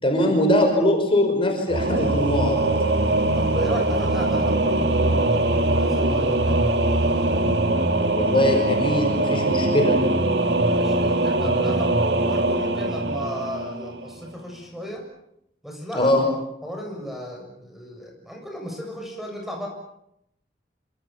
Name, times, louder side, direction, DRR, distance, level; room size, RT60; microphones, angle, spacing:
voice 1, 0.0-2.6 8.1-10.0 15.9-16.2, left 1 dB, 30° left, 3 dB, 5.6 m, -21 dB
Singing / Musical instrument, 1.7-14.2, right 2 dB, 75° right, 2.3 m, -22 dB
voice 2, 3.3-6.7 10.6-15.0 15.6-16.3 16.6-19.7, equal, ahead, 2 dB, 7.2 m, -34 dB
28.5 x 26.0 x 7.1 m, 0.80 s
head